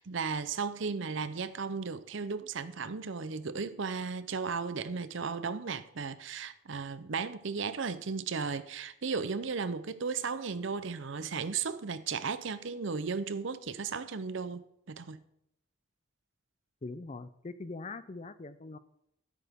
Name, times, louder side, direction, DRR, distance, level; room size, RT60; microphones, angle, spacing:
voice 1, 0.0-15.2, right 5 dB, 60° right, 0.6 m, -35 dB
voice 2, 16.8-18.8, left 3 dB, 30° left, 0.5 m, -42 dB
14.0 x 8.5 x 3.6 m
head